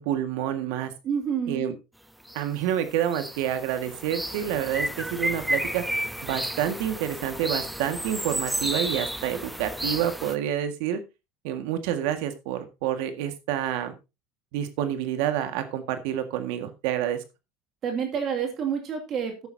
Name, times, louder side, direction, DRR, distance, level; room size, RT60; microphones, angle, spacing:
voice 1, 0.0-0.9 1.5-1.7 2.3-5.8 6.2-11.0 11.4-13.9 14.5-17.2, right 10 dB, 70° right, 9 dB, 1.8 m, -28 dB
voice 2, 1.0-1.6 17.8-19.5, right 7 dB, 35° right, 3 dB, 2.3 m, -28 dB
sound 1, 2.3-2.4 2.7-10.4, right 1 dB, ahead, 0.6 m, -32 dB
14.0 x 9.2 x 2.8 m, 0.26 s
supercardioid pair, 145°, 0 cm